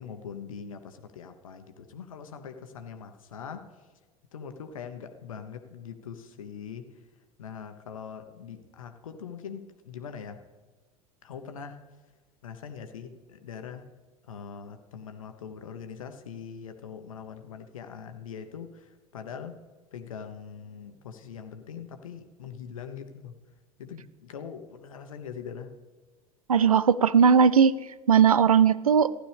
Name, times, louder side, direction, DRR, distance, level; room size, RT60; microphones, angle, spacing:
voice 1, 0.0-3.7 4.3-6.9 7.4-10.4 11.2-11.8 12.4-13.8 14.2-19.6 19.9-23.4 23.8-25.7, left 7 dB, 70° left, 1.0 m, -42 dB
voice 2, 26.5-27.7 28.1-29.1, right 7 dB, 80° right, 0.4 m, -18 dB
15.0 x 11.5 x 3.4 m
figure-of-eight pair, 75°, 18 cm